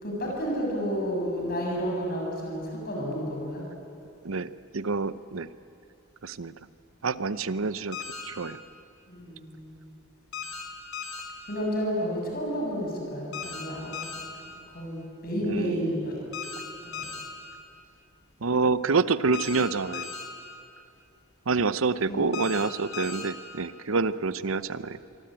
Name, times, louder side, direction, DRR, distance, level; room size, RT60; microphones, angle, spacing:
voice 1, 0.0-3.6 9.1-9.8 11.5-13.9 14.4-14.5 14.7-16.2 16.8-17.1 22.1-22.3, equal, 45° left, -1 dB, 7.3 m, -31 dB
voice 2, 4.2-5.5 6.2-6.5 7.0-8.0 8.2-8.6 15.4-16.0 18.4-20.1 21.5-25.0, right 4 dB, 85° right, 15 dB, 0.8 m, -27 dB
sound 1, 7.9-8.2 10.3-10.6 10.9-11.2 13.3-13.6 13.9-14.2 16.3-16.6 16.9-17.2 19.3-19.6 19.9-20.2 22.3-22.6 22.9-23.2, left 6 dB, 75° left, 5.2 m, -36 dB
26.0 x 23.5 x 9.0 m, 2.6 s
head